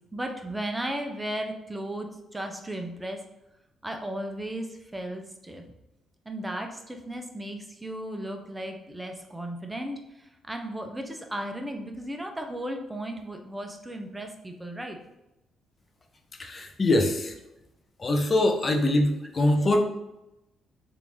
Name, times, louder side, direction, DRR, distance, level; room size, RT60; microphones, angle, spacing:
voice 1, 0.1-3.2 3.8-5.6 6.3-15.0, right 1 dB, 10° right, 4 dB, 0.5 m, -35 dB
voice 2, 16.4-17.3 18.0-19.8, left 1 dB, 35° left, 4 dB, 0.6 m, -23 dB
3.6 x 2.6 x 3.0 m, 0.93 s
cardioid pair, 90°, 0 cm